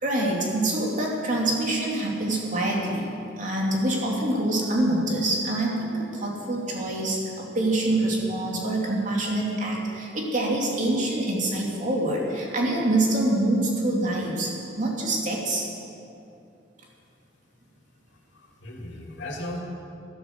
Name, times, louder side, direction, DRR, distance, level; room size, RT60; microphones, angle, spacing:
voice 1, 0.0-14.5 14.8-15.6, right 1 dB, 45° right, -2 dB, 2.8 m, -25 dB
voice 2, 18.1-19.6, left 1 dB, 80° left, 0 dB, 2.7 m, -37 dB
13.0 x 12.5 x 6.8 m, 2.6 s
head